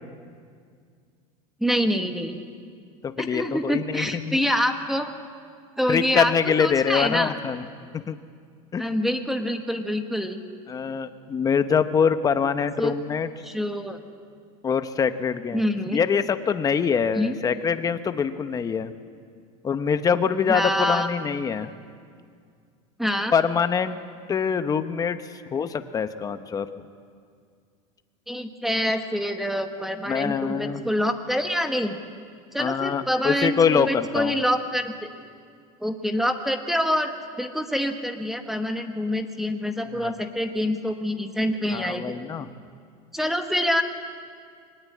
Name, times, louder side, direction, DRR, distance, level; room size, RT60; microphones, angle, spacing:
voice 1, 1.6-2.4 3.2-5.1 5.8-6.3 6.6-7.4 8.8-10.4 12.8-12.9 13.4-14.0 15.5-16.0 17.2-17.3 20.5-21.1 23.0-23.3 28.3-32.0 32.5-35.1 35.8-37.1 37.4-42.1 43.1-43.8, equal, ahead, 6 dB, 1.2 m, -26 dB
voice 2, 3.0-4.4 5.9-7.6 7.9-8.2 8.7-8.9 10.7-13.3 14.6-18.9 19.6-21.7 23.3-24.0 24.3-25.2 25.5-26.7 30.1-30.8 32.6-34.4 40.0-40.1 41.7-42.5, left 6 dB, 20° left, 10 dB, 1.0 m, -24 dB
23.0 x 19.5 x 8.5 m, 2.2 s
supercardioid pair, 145°, 18 cm